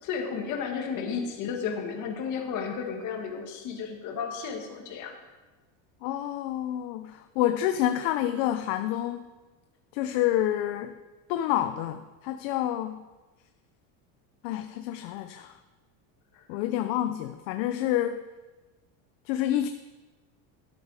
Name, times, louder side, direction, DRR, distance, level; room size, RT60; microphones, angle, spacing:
voice 1, 0.0-5.2 16.3-16.4, left 6 dB, 45° left, 2 dB, 1.9 m, -33 dB
voice 2, 6.0-9.3 9.9-10.9 11.3-13.0 14.4-15.5 16.5-18.2 19.3-19.7, left 12 dB, 65° left, 8 dB, 0.7 m, -28 dB
12.5 x 8.5 x 4.9 m, 1.2 s
cardioid pair, 155°, 43 cm